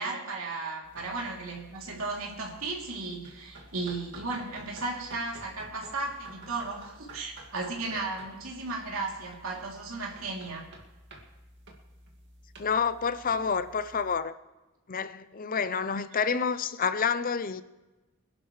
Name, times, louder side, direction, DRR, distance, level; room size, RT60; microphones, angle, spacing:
voice 1, 0.0-10.7, right 3 dB, 75° right, 3.1 m, -35 dB
sound 1, 0.8-14.2, right 1 dB, 60° right, 2.1 m, -51 dB
voice 2, 12.6-14.3 14.9-17.6, left 6 dB, 40° left, 0.6 m, -28 dB
25.0 x 11.5 x 3.3 m
head